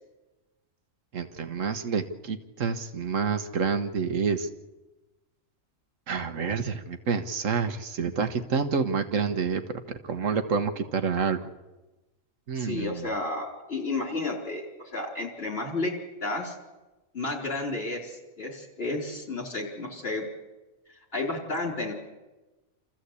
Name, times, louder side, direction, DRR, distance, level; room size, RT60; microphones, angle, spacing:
voice 1, 1.1-4.5 6.1-9.6 10.1-11.4 12.5-13.1, right 5 dB, 70° right, 9 dB, 1.5 m, -28 dB
voice 2, 12.5-14.6 14.9-15.9 16.2-16.5 17.1-20.2 21.1-21.9, left 2 dB, 45° left, 0 dB, 4.3 m, -31 dB
27.0 x 14.5 x 8.3 m, 1.1 s
omnidirectional pair, 1.4 m